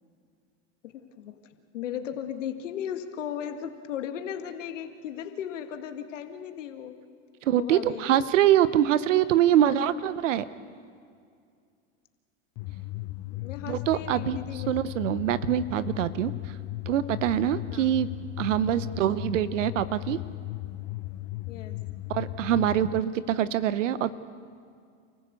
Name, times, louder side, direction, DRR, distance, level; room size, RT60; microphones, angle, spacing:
voice 1, 0.8-1.4 1.7-6.9 7.5-8.1 13.3-14.7 17.7-18.0 21.5-21.8, left 9 dB, 85° left, 8 dB, 2.0 m, -36 dB
voice 2, 7.5-10.5 13.7-16.3 16.9-18.1 18.4-20.2 22.1-24.1, right 11 dB, 85° right, 16 dB, 1.0 m, -24 dB
sound 1, 12.6-23.0, left 18 dB, 55° left, 0.9 m, -36 dB
28.5 x 15.5 x 8.3 m, 2.3 s
hypercardioid pair, 100°, 36 cm